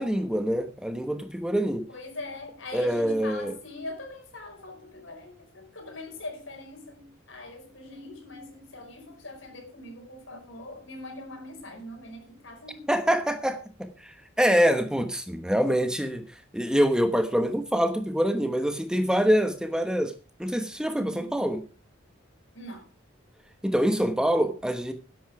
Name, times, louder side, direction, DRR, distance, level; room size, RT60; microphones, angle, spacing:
voice 1, 0.0-1.8 2.7-3.5 12.9-13.6 14.0-16.2 16.5-20.1 20.4-21.6 23.6-24.9, equal, 5° right, 1.1 m, -25 dB
voice 2, 1.9-12.9 21.0-21.4 22.5-22.8, left 2 dB, 70° left, 5.2 m, -42 dB
12.5 x 10.5 x 4.7 m
head